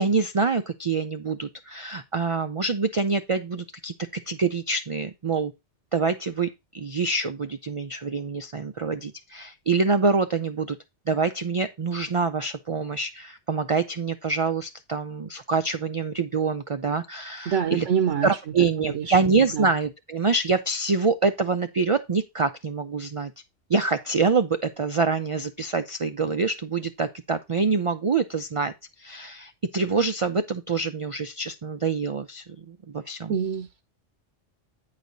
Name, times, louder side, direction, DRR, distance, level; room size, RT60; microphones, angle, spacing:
voice 1, 0.0-5.5 5.9-10.8 11.1-17.9 18.2-23.3 23.7-28.7 29.0-33.4, right 4 dB, 55° right, 0.3 m, -25 dB
voice 2, 17.5-18.3 18.8-19.2 19.5-19.7 33.3-33.8, right 7 dB, 90° right, 1.1 m, -26 dB
9.3 x 4.9 x 3.9 m
omnidirectional pair, 1.2 m